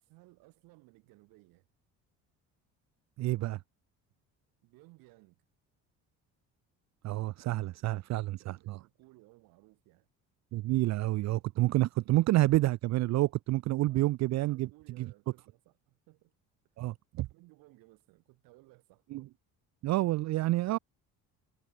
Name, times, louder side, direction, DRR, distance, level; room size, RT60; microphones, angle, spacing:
voice 1, 0.0-1.7 4.6-5.5 8.2-10.1 13.9-14.0 14.3-16.3 16.7-16.8 17.3-19.1, right 23 dB, 85° right, 4.4 m, -60 dB
voice 2, 3.2-3.6 7.0-8.8 10.5-14.7 15.0-15.1 16.8-17.3 19.1-19.2 19.8-20.8, right 17 dB, 55° right, 0.4 m, -29 dB
cardioid pair, 95°, 33 cm